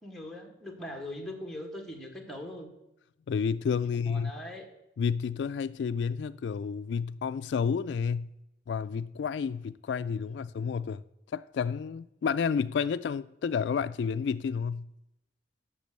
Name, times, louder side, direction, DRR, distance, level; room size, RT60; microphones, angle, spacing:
voice 1, 0.0-2.7 3.8-4.7 10.3-10.5, left 1 dB, 5° left, 1.7 m, -41 dB
voice 2, 3.3-4.3 5.0-8.3 8.7-11.0 11.3-14.9, left 6 dB, 75° left, 0.3 m, -30 dB
8.5 x 6.7 x 7.5 m
head